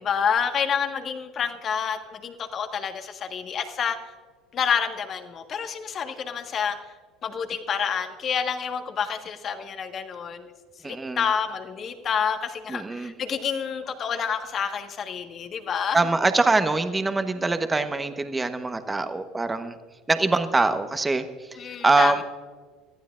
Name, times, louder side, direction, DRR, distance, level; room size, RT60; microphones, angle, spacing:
voice 1, 0.0-4.0 4.5-6.8 7.2-16.0 21.6-22.2, left 7 dB, 45° left, 6 dB, 1.5 m, -28 dB
voice 2, 10.8-11.2 12.7-13.1 15.9-19.8 20.1-21.6 21.8-22.2, right 3 dB, 20° right, 9 dB, 1.1 m, -23 dB
24.5 x 14.5 x 2.5 m, 1.5 s
hypercardioid pair, 70°, 0 cm